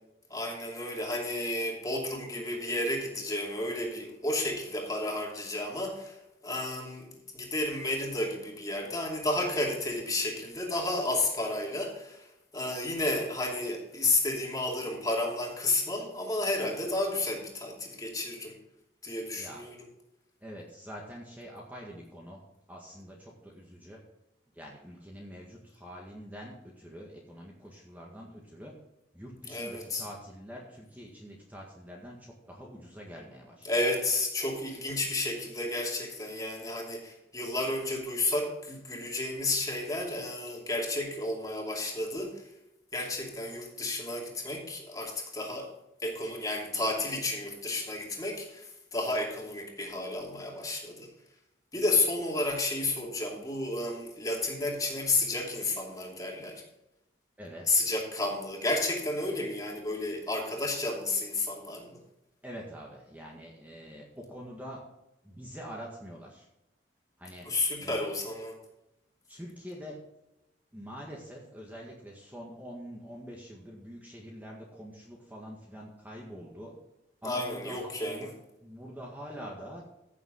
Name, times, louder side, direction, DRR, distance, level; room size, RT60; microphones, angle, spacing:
voice 1, 0.3-6.2 6.4-12.3 12.5-18.6 19.0-19.8 29.5-30.0 33.6-42.4 42.9-45.7 46.0-51.1 51.7-56.6 57.7-62.0 67.4-68.6 77.2-78.3, left 2 dB, 20° left, -1 dB, 2.7 m, -32 dB
voice 2, 20.4-22.4 22.7-24.0 24.5-28.7 29.1-33.7 57.4-57.7 62.4-64.8 65.2-66.5 67.2-67.5 67.8-68.1 69.3-70.0 70.7-76.7 77.2-78.3 78.6-79.8, equal, 10° right, -2 dB, 1.8 m, -45 dB
15.5 x 7.3 x 3.9 m, 0.90 s
head